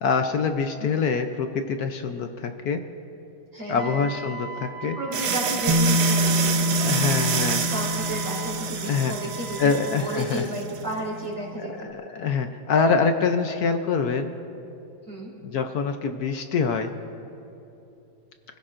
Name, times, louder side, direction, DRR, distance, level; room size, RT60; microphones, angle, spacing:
voice 1, 0.0-2.8 3.7-5.0 6.8-7.6 8.9-9.1 9.6-10.5 11.8-14.3 15.4-16.9, left 5 dB, 65° left, 7 dB, 1.0 m, -25 dB
voice 2, 3.5-4.1 4.8-7.2 7.7-9.7 10.0-11.9 15.0-15.3, right 1 dB, 20° right, -3 dB, 3.4 m, -33 dB
Wind instrument woodwind instrument, 3.8-10.0, right 5 dB, 30° left, 3.3 m, -39 dB
sound 1, 5.1-10.8, right 7 dB, 80° right, 1.7 m, -28 dB
Bass guitar, 5.7-11.7, left 1 dB, 55° right, 0.4 m, -28 dB
29.0 x 16.0 x 2.5 m, 2.9 s
omnidirectional pair, 2.2 m